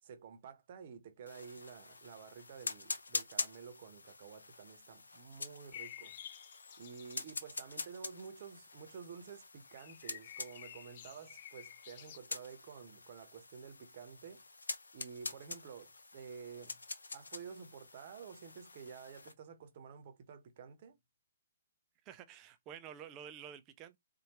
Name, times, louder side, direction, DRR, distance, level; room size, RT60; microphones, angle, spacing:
voice 1, 0.0-6.2 6.8-14.4 14.9-16.8 17.1-21.0, right 6 dB, 40° right, 1.0 m, -51 dB
sound 1, 1.3-19.3, left 3 dB, 70° left, 0.7 m, -46 dB
sound 2, 5.7-7.3 9.7-12.2, left 11 dB, 40° left, 0.3 m, -51 dB
voice 2, 22.0-24.0, right 9 dB, 25° right, 0.6 m, -50 dB
4.2 x 2.6 x 3.0 m
figure-of-eight pair, 130°, 0 cm